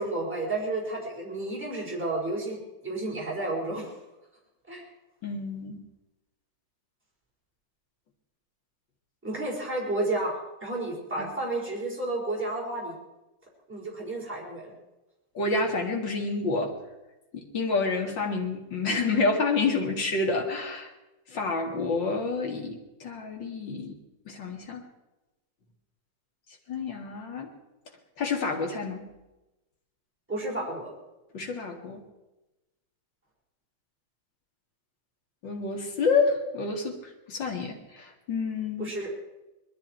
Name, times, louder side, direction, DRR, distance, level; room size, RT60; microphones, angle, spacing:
voice 1, 0.0-3.9 4.7-4.8 9.2-12.9 13.7-14.7 30.3-30.9 38.8-39.1, right 2 dB, 5° right, -4 dB, 4.6 m, -31 dB
voice 2, 5.2-5.8 11.2-11.3 15.3-16.7 17.3-20.9 21.3-24.0 24.3-24.8 26.7-27.5 28.2-29.0 31.3-32.0 35.4-37.0 37.3-38.9, left 3 dB, 75° left, 2 dB, 2.9 m, -28 dB
20.5 x 13.0 x 4.5 m, 1.0 s
omnidirectional pair, 2.0 m